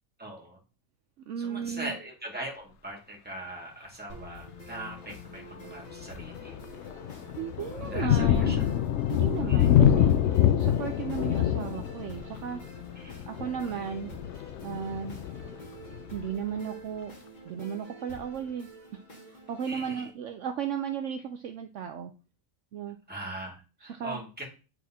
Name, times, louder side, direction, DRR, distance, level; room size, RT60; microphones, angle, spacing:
voice 1, 0.2-0.6 1.4-6.6 7.8-8.6 9.5-9.8 13.0-13.2 19.7-20.1 23.1-24.4, right 1 dB, 5° right, -2 dB, 1.9 m, -41 dB
voice 2, 1.3-2.0 7.4-8.7 9.1-12.6 13.3-14.1 14.6-15.2 16.1-17.1 17.5-18.7 19.3-22.1 22.7-23.0 23.8-24.2, right 7 dB, 65° right, 6 dB, 0.9 m, -35 dB
sound 1, 4.1-20.1, equal, 30° left, 2.2 m, -48 dB
Thunder, 4.2-4.5 5.1-5.3 5.7-16.3, left 10 dB, 65° left, 0.8 m, -26 dB
9.5 x 3.6 x 4.2 m, 0.34 s
omnidirectional pair, 1.5 m